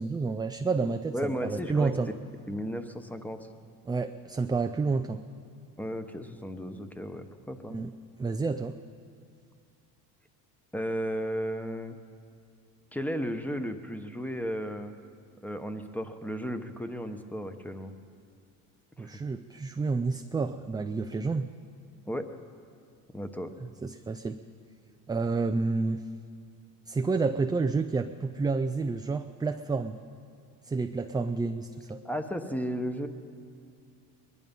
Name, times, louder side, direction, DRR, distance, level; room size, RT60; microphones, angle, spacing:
voice 1, 0.0-2.1 3.9-5.2 7.7-7.9 8.2-8.8 19.0-21.5 23.8-24.4 25.1-26.0 26.9-30.0 30.6-32.0, right 4 dB, 10° right, 7 dB, 0.3 m, -29 dB
voice 2, 1.1-1.9 2.5-3.4 5.8-7.8 10.7-12.0 12.9-14.9 15.4-17.9 19.0-19.2 22.1-22.3 23.1-23.5 32.0-33.1, equal, 5° left, 8 dB, 1.0 m, -34 dB
20.5 x 11.0 x 5.4 m, 2.3 s
cardioid pair, 95°, 38 cm